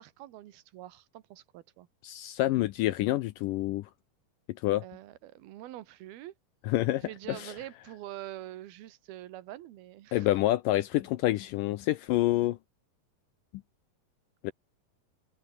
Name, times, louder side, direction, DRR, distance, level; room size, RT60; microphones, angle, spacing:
voice 1, 0.0-1.9 4.8-6.3 7.0-10.3 14.4-14.5, right 14 dB, 80° right, 3.2 m, -45 dB
voice 2, 2.0-3.9 4.5-4.8 6.7-7.5 10.1-12.6 14.4-14.5, left 16 dB, 80° left, 2.0 m, -28 dB
omnidirectional pair, 4.5 m